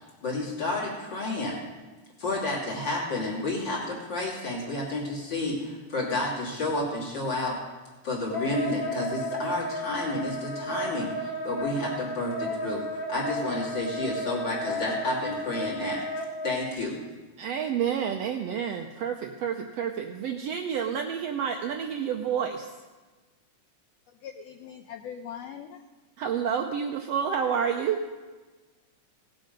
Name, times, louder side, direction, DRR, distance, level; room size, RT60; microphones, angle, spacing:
voice 1, 0.2-1.6 2.2-7.6 8.0-12.8 13.1-17.0, left 2 dB, 35° left, -4 dB, 3.3 m, -30 dB
Wind instrument woodwind instrument, 8.3-16.5, equal, 55° left, 0.6 m, -33 dB
voice 2, 17.4-22.7 26.2-28.0, right 7 dB, 75° right, 4 dB, 1.5 m, -29 dB
voice 3, 24.2-25.8, left 8 dB, 80° left, 6 dB, 1.4 m, -41 dB
17.5 x 7.8 x 5.3 m, 1.3 s
omnidirectional pair, 3.5 m